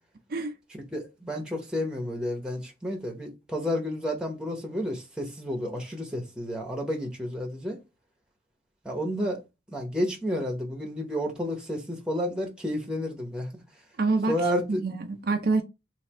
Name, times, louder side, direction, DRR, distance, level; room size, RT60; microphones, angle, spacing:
voice 1, 0.7-7.8 8.8-9.4 9.7-13.6 14.3-14.8, equal, 5° right, 1.0 m, -31 dB
voice 2, 14.0-15.6, right 3 dB, 55° right, 0.5 m, -27 dB
3.2 x 2.7 x 4.2 m
head